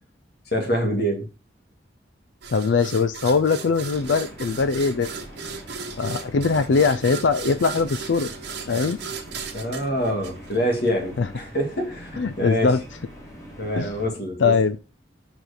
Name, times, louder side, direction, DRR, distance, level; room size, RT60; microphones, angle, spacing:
voice 1, 0.5-1.3 9.5-12.8 13.6-14.5, equal, 60° left, 2.0 m, -25 dB
sound 1, 2.4-10.9, right 5 dB, 60° right, 1.5 m, -36 dB
voice 2, 2.5-5.1 6.0-8.3 8.7-9.0 11.2-11.3 12.2-12.8 13.8-13.9 14.4-14.8, left 4 dB, 75° left, 0.5 m, -21 dB
sound 2, 3.9-14.1, equal, 20° left, 2.3 m, -43 dB
6.0 x 4.8 x 4.9 m
head